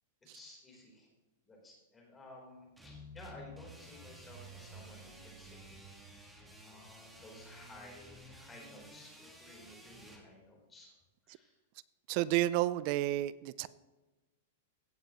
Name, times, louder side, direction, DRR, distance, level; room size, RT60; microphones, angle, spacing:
voice 1, 0.3-1.1 1.4-10.9 11.2-11.6, left 1 dB, 10° left, -1 dB, 3.7 m, -55 dB
sound 1, 2.8-10.2, equal, 5° right, 1.5 m, -54 dB
sound 2, 4.0-7.9, right 7 dB, 65° right, 0.8 m, -56 dB
voice 2, 12.1-13.7, right 15 dB, 40° right, 18 dB, 0.4 m, -31 dB
16.5 x 7.7 x 3.0 m, 1.1 s
supercardioid pair, 155°, 0 cm